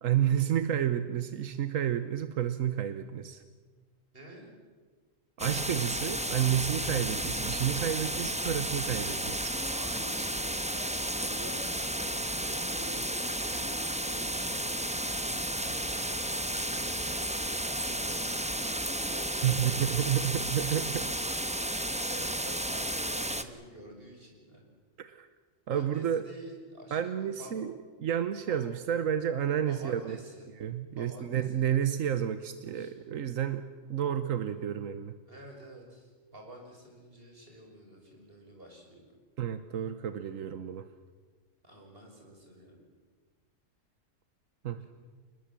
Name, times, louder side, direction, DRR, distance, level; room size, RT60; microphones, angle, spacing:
voice 1, 0.0-3.4 5.4-9.6 19.4-21.0 25.0-25.3 25.7-26.2 26.9-27.7 28.0-30.2 30.6-33.6 33.9-35.1 39.4-40.9 44.6-44.8, right 10 dB, 90° right, 11 dB, 1.3 m, -30 dB
voice 2, 4.1-4.5 9.7-19.7 20.7-21.0 22.0-24.6 25.7-27.5 28.4-28.6 29.6-30.5 30.9-31.7 32.7-32.9 35.3-39.1 41.6-42.8 44.8-44.9, right 1 dB, 45° right, 1 dB, 6.4 m, -49 dB
sound 1, 5.4-23.4, right 1 dB, 5° right, 1.0 m, -33 dB
28.5 x 20.0 x 7.5 m, 1.5 s
omnidirectional pair, 1.3 m